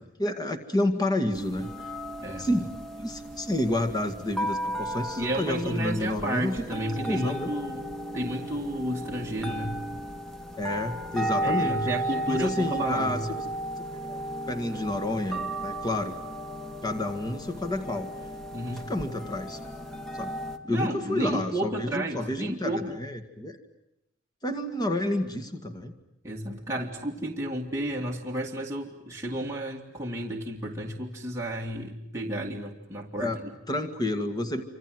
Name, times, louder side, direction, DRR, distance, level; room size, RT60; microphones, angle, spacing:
voice 1, 0.0-1.7 2.4-6.8 7.1-7.5 10.6-11.9 12.3-13.4 13.9-14.2 14.5-16.1 16.8-18.1 18.9-19.6 20.1-20.3 20.7-23.6 24.4-25.9 33.2-33.4 33.7-34.6, left 1 dB, 20° left, 6 dB, 2.0 m, -30 dB
sound 1, 1.3-20.6, right 1 dB, 5° left, 1.9 m, -35 dB
voice 2, 5.2-7.8 8.1-9.8 11.4-13.3 18.5-18.8 20.6-23.0 26.2-33.5, right 1 dB, 15° right, -2 dB, 2.3 m, -32 dB
28.5 x 26.5 x 7.8 m, 0.84 s
head